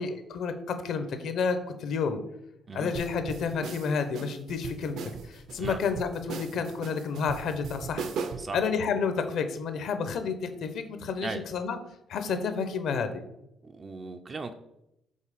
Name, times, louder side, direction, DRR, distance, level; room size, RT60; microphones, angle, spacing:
voice 1, 0.0-2.2 2.7-8.1 8.5-10.4 10.6-11.8 12.1-13.2, left 5 dB, 60° left, 9 dB, 0.7 m, -30 dB
sound 1, 2.9-8.5, right 5 dB, 65° right, 0.6 m, -38 dB
voice 2, 13.6-14.5, right 3 dB, 25° right, 7 dB, 0.3 m, -37 dB
5.4 x 3.9 x 5.0 m, 0.84 s
cardioid pair, 170°, 0 cm